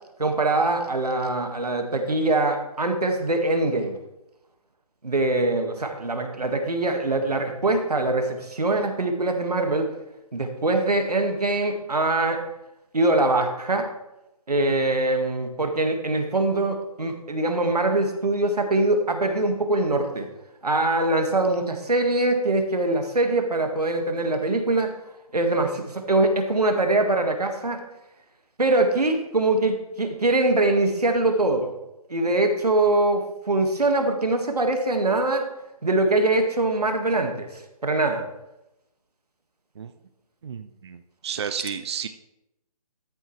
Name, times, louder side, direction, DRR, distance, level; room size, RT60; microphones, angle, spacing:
voice 1, 0.2-4.0 5.0-9.9 10.3-12.4 12.9-13.9 14.5-20.3 20.6-24.9 25.3-27.8 28.6-31.7 32.1-35.5 35.8-38.2, right 2 dB, 90° right, 5 dB, 1.8 m, -23 dB
voice 2, 40.4-42.1, right 7 dB, 45° right, 9 dB, 0.5 m, -32 dB
13.5 x 7.3 x 3.2 m, 0.91 s
figure-of-eight pair, 155°, 19 cm